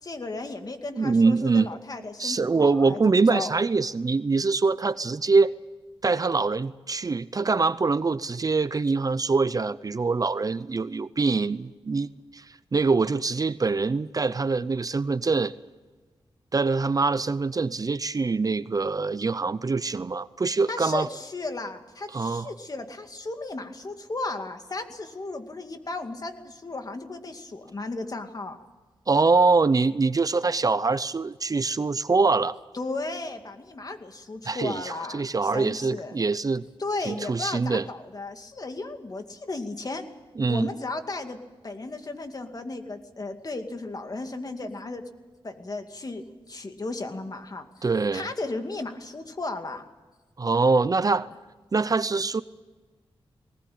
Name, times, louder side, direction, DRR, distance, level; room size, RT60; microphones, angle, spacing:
voice 1, 0.0-3.5 20.7-28.6 32.7-36.2 36.8-40.0 40.5-45.0 45.4-47.7 48.1-49.8, left 2 dB, 40° left, 6 dB, 2.3 m, -35 dB
voice 2, 0.9-1.7 2.2-5.5 6.0-15.5 16.5-21.1 22.1-22.5 29.1-32.6 34.5-36.6 37.1-37.8 40.4-40.7 47.8-48.3 50.4-51.3 51.7-52.4, right 4 dB, 40° right, 15 dB, 0.6 m, -24 dB
20.0 x 19.5 x 8.6 m, 1.3 s
wide cardioid pair, 95°, 10 cm